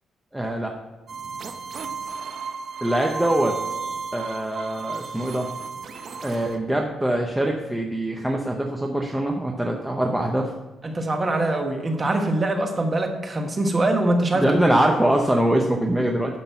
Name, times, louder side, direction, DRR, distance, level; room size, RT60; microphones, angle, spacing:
voice 1, 0.3-0.7 2.8-3.5 4.1-5.5 6.2-10.5 14.3-16.4, right 1 dB, 5° right, 1 dB, 0.7 m, -23 dB
sound 1, 1.1-6.6, right 5 dB, 40° right, 0.8 m, -33 dB
voice 2, 10.8-14.6, right 2 dB, 20° right, 4 dB, 1.2 m, -23 dB
10.5 x 5.9 x 5.8 m, 1.2 s
cardioid pair, 180°, 0 cm